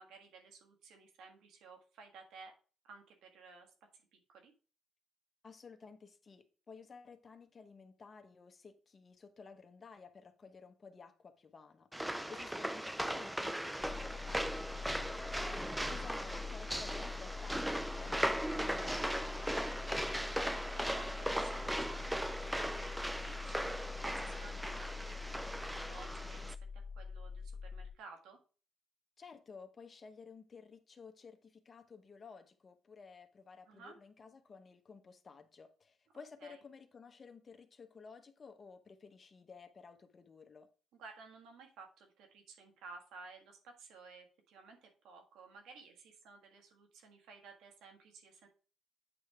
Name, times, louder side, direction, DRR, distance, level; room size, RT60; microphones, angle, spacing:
voice 1, 0.0-2.5 2.8-4.5 12.3-12.5 15.8-16.0 20.1-28.4 33.7-33.9 36.4-36.6 41.0-48.5, right 4 dB, 85° right, 1.6 m, -55 dB
voice 2, 5.4-11.9 12.3-19.7 29.2-40.7, left 5 dB, 40° left, 1.0 m, -55 dB
sound 1, 11.9-26.5, right 1 dB, 5° right, 0.5 m, -38 dB
sound 2, 13.8-27.9, left 5 dB, 15° left, 0.9 m, -45 dB
8.4 x 3.5 x 4.8 m
cardioid pair, 90°, 0 cm